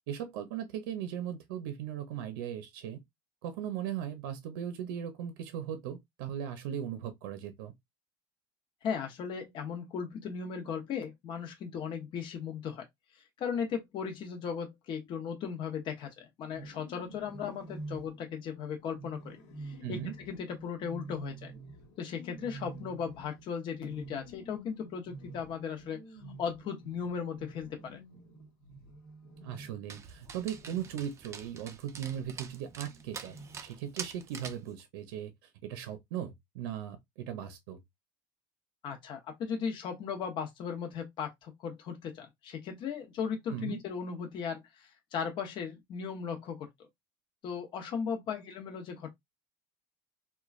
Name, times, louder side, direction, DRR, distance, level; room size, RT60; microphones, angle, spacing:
voice 1, 0.1-3.0 3.4-7.7 19.8-20.1 29.4-37.8 43.5-43.8, right 10 dB, 90° right, 0.6 m, -38 dB
voice 2, 8.8-12.8 13.1-20.0 20.3-21.5 22.0-26.0 26.4-28.0 38.8-46.9 47.4-49.1, left 6 dB, 45° left, 0.7 m, -37 dB
sound 1, 16.4-31.2 31.9-33.8, right 2 dB, 70° left, 1.1 m, -48 dB
Dog, 29.9-34.7, right 6 dB, 25° right, 0.4 m, -45 dB
3.0 x 2.2 x 2.3 m
supercardioid pair, 130°, 11 cm